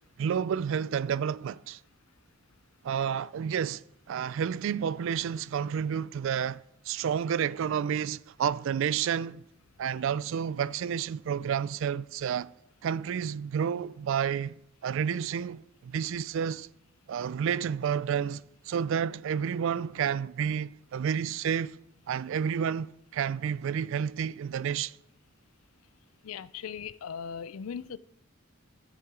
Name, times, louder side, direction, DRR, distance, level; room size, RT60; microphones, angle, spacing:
voice 1, 0.2-1.8 2.8-3.8 4.1-9.4 9.8-12.5 12.8-14.5 14.8-16.7 17.1-21.8 22.1-24.9, right 8 dB, 65° right, 0.3 m, -30 dB
voice 2, 26.2-28.0, left 7 dB, 90° left, 0.4 m, -38 dB
12.0 x 7.7 x 3.7 m
head